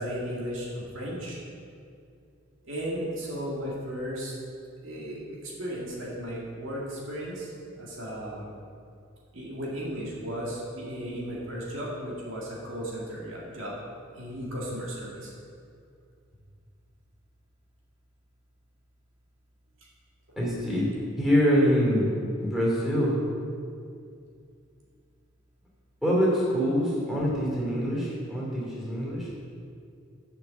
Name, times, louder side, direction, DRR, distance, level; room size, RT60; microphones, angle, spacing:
voice 1, 0.0-1.4 2.6-4.3 4.8-7.5 7.8-8.5 9.3-13.7 14.2-15.3, equal, 75° right, -5 dB, 2.1 m, -35 dB
voice 2, 20.4-20.9 21.2-22.1 22.4-23.2 26.0-29.3, equal, ahead, -6 dB, 2.7 m, -25 dB
6.9 x 6.7 x 7.1 m, 2.4 s
head